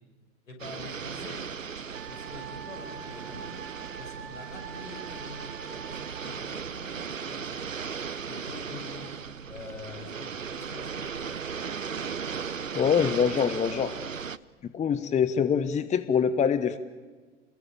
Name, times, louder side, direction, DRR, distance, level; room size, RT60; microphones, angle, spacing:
voice 1, 0.4-1.5 2.1-3.5 3.9-7.8 8.2-9.1 9.5-11.4, left 2 dB, 75° left, 3 dB, 6.5 m, -45 dB
sound 1, 0.6-14.4, right 6 dB, 90° right, 0.7 m, -37 dB
Wind instrument woodwind instrument, 1.9-6.4, right 8 dB, 55° right, 2.8 m, -44 dB
voice 2, 12.7-14.0 14.7-16.8, left 7 dB, 20° left, 13 dB, 1.0 m, -24 dB
27.5 x 21.0 x 8.8 m, 1.4 s
figure-of-eight pair, 85°, 38 cm